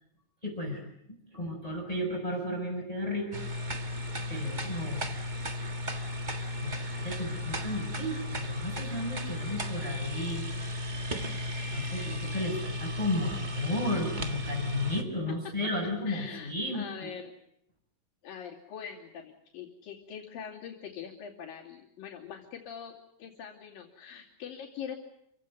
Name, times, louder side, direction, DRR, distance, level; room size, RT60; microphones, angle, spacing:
voice 1, 0.4-3.3 4.3-5.1 6.6-10.5 11.6-17.1, left 1 dB, 10° left, 1 dB, 5.8 m, -34 dB
sound 1, 3.3-15.0, left 1 dB, 65° right, 0.4 m, -35 dB
voice 2, 16.1-17.4 18.2-22.9 23.2-25.0, left 7 dB, 85° left, -6 dB, 4.6 m, -43 dB
28.5 x 16.5 x 9.7 m, 0.77 s
omnidirectional pair, 3.9 m